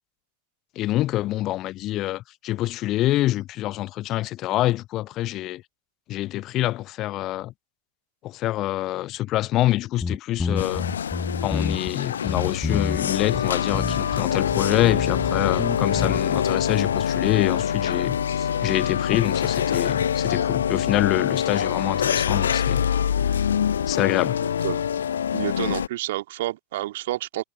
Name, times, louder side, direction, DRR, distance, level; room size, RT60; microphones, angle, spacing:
voice 1, 0.8-5.6 6.1-7.5 8.2-10.9 11.4-22.9 23.9-24.4, left 15 dB, 35° left, 0.6 m, -26 dB
sound 1, 10.0-11.9 12.3-13.1 13.3-13.4 13.7-14.2 14.5-16.4, left 4 dB, 15° left, 5.6 m, -28 dB
sound 2, 10.6-25.9, left 8 dB, 65° left, 0.8 m, -25 dB
voice 2, 25.3-27.4, right 16 dB, 55° right, 2.5 m, -29 dB
figure-of-eight pair, 90°, 0 cm